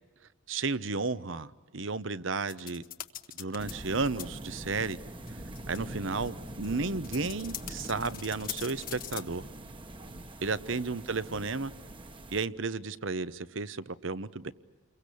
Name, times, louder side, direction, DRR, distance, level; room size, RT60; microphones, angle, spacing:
voice 1, 0.5-2.8 3.3-5.0 5.7-9.4 10.4-11.7 12.3-14.5, right 4 dB, 65° right, 1.0 m, -33 dB
sound 1, 2.5-3.7 4.0-4.2 4.9-5.0 5.3-5.4 5.6-5.8 6.3-9.2, left 11 dB, 45° left, 1.3 m, -41 dB
sound 2, 3.6-12.5, right 1 dB, 25° right, 1.3 m, -44 dB
30.0 x 23.0 x 8.5 m
head